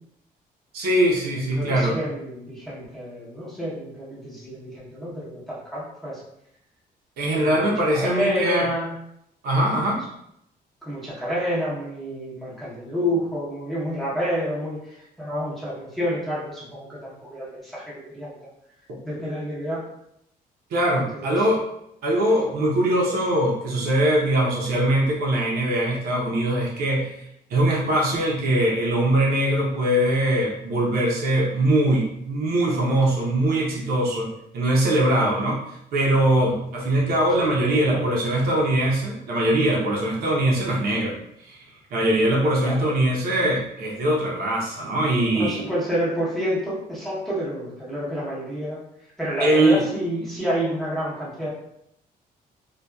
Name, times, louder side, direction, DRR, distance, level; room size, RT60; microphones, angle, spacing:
voice 1, 0.7-1.9 7.2-8.7 9.4-10.0 18.9-19.0 20.7-21.6 22.0-27.1 27.5-34.3 34.5-35.6 35.9-41.2 41.4-41.6 41.9-45.6 49.4-49.8, right 1 dB, 80° right, -3 dB, 0.7 m, -22 dB
voice 2, 1.3-6.2 7.4-8.9 9.5-9.8 10.8-18.4 19.0-19.8 21.1-21.5 37.4-38.1 42.6-42.8 45.2-48.8 49.2-51.5, equal, ahead, -9 dB, 0.8 m, -29 dB
2.7 x 2.3 x 2.3 m, 0.76 s
cardioid pair, 165°, 16 cm